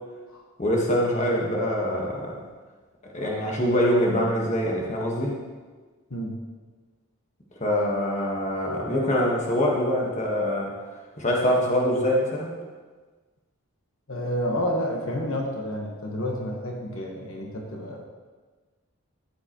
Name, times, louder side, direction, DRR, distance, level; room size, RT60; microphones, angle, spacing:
voice 1, 0.6-2.4 3.1-5.3 7.6-10.7 11.2-12.5, equal, 30° left, -2 dB, 1.4 m, -24 dB
voice 2, 14.1-18.1, equal, 65° left, 0 dB, 1.3 m, -30 dB
13.0 x 7.8 x 3.0 m, 1.4 s
head